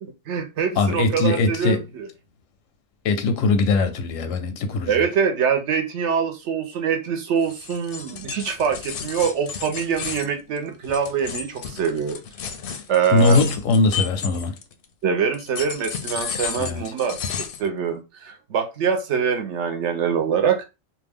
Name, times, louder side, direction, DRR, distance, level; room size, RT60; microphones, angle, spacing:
voice 1, 0.0-2.1 4.9-12.2 12.9-13.4 15.0-17.2 17.6-20.6, right 6 dB, 70° right, 1.0 m, -24 dB
voice 2, 0.8-1.8 3.0-5.0 13.1-14.5 16.6-16.8, left 3 dB, 90° left, 1.0 m, -20 dB
sound 1, 7.4-14.8 15.3-17.7, left 7 dB, 60° left, 0.6 m, -33 dB
2.7 x 2.2 x 3.4 m
omnidirectional pair, 1.3 m